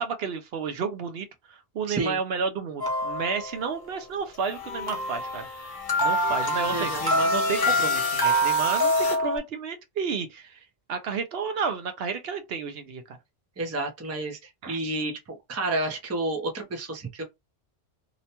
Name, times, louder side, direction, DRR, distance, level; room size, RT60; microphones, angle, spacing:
voice 1, 0.0-5.7 6.0-13.2 14.6-14.9, right 5 dB, 70° right, 0.8 m, -32 dB
voice 2, 1.9-2.2 6.7-7.0 13.6-14.4 14.7-17.2, right 2 dB, 20° right, 0.5 m, -30 dB
sound 1, 2.8-3.7 4.9-9.4, equal, 25° left, 0.8 m, -25 dB
sound 2, 4.4-9.2, left 6 dB, 55° left, 0.8 m, -34 dB
2.8 x 2.1 x 2.8 m
omnidirectional pair, 1.1 m